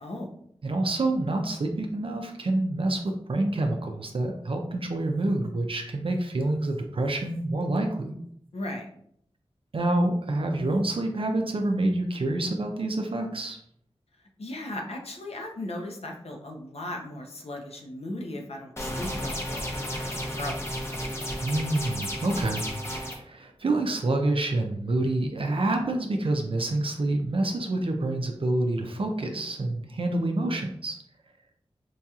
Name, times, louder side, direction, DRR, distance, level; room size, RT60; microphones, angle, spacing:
voice 1, 0.0-0.3 8.5-8.9 14.4-20.6, left 1 dB, 75° left, 2 dB, 0.7 m, -37 dB
voice 2, 0.6-3.0 3.3-8.2 9.7-13.6 21.4-31.0, right 2 dB, 60° right, 3 dB, 0.4 m, -27 dB
sound 1, 18.8-23.1, equal, 25° left, 0.8 m, -33 dB
4.6 x 2.8 x 2.3 m, 0.68 s
wide cardioid pair, 75°, 11 cm